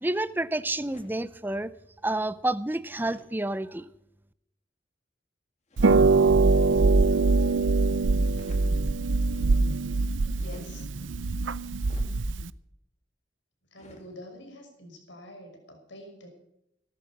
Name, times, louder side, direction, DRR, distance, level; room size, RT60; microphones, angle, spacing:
voice 1, 0.0-1.7 2.0-3.9, right 1 dB, 10° right, 15 dB, 0.6 m, -29 dB
sound 1, 0.9-1.3 2.9-3.3 5.7-6.0 8.2-8.7 10.4-10.8 11.8-12.1 13.8-14.1, left 1 dB, 40° left, 2.6 m, -51 dB
Harp, 5.8-12.5, right 3 dB, 85° right, 0.6 m, -23 dB
voice 2, 10.4-10.9 13.7-16.3, left 1 dB, 80° left, 4 dB, 5.8 m, -46 dB
17.5 x 13.0 x 6.1 m, 0.80 s
head